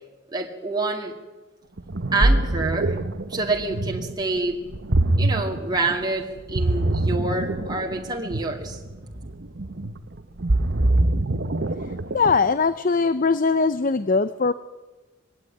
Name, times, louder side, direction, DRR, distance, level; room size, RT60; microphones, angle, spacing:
voice 1, 0.3-1.1 2.1-3.0 3.3-4.6 5.2-8.8, right 3 dB, 20° right, 1 dB, 2.2 m, -27 dB
Ocean, 1.8-12.5, right 2 dB, 60° right, 1.0 m, -24 dB
voice 2, 11.8-14.5, left 4 dB, 45° left, 14 dB, 0.6 m, -21 dB
21.5 x 16.5 x 10.0 m, 1.2 s
head